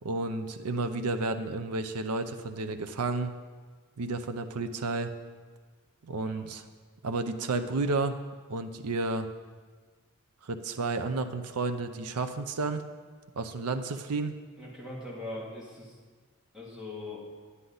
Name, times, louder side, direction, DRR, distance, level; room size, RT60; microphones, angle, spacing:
voice 1, 0.0-3.3 4.0-5.1 6.0-6.6 7.0-8.2 8.5-9.3 10.4-12.8 13.4-14.3, right 3 dB, 85° right, 9 dB, 0.6 m, -31 dB
voice 2, 14.6-16.0 16.5-17.2, left 2 dB, 5° right, -7 dB, 2.5 m, -41 dB
9.7 x 9.7 x 3.9 m, 1.5 s
head